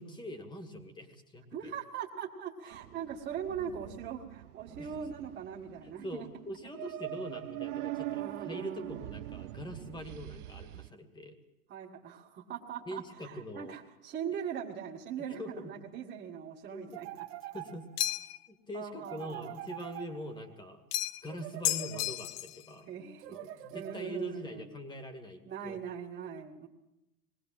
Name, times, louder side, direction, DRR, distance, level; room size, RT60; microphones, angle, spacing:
voice 1, 0.0-1.7 4.8-4.9 5.8-11.4 12.9-13.7 15.4-15.7 16.7-17.0 17.5-18.0 18.5-20.8 21.2-22.9 23.3-25.8, equal, 10° left, 7 dB, 2.1 m, -43 dB
voice 2, 1.5-6.3 7.9-9.1 11.7-17.3 18.7-19.6 22.9-24.7 25.4-26.7, right 8 dB, 25° right, -3 dB, 2.0 m, -41 dB
sound 1, 2.7-10.9, right 16 dB, 80° right, 0.7 m, -43 dB
sound 2, 16.9-18.2 19.0-20.6 21.3-22.4 23.2-24.4, right 14 dB, 50° right, 1.9 m, -45 dB
sound 3, 18.0-18.5 20.9-21.3 21.6-22.6, left 14 dB, 45° left, 0.6 m, -33 dB
21.5 x 17.0 x 7.7 m, 0.94 s
supercardioid pair, 140°, 45 cm